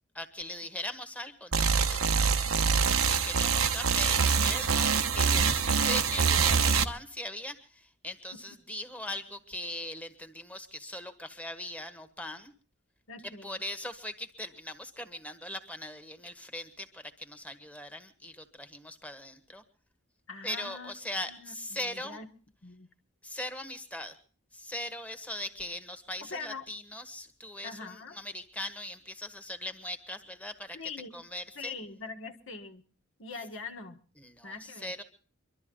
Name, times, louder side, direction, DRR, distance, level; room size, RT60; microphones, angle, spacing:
voice 1, 0.1-12.5 13.2-19.6 20.4-22.2 23.2-24.2 24.5-30.8 31.1-31.7 34.2-35.0, left 1 dB, 5° left, 1.4 m, -40 dB
sound 1, 1.5-6.8, right 6 dB, 80° right, 1.0 m, -25 dB
voice 2, 13.1-13.6 20.3-20.9 21.2-22.3 22.6-22.9 26.3-26.6 27.6-28.2 30.7-31.1 31.6-32.8 33.2-34.0 34.4-34.9, left 4 dB, 65° left, 1.5 m, -42 dB
24.0 x 13.0 x 3.8 m
head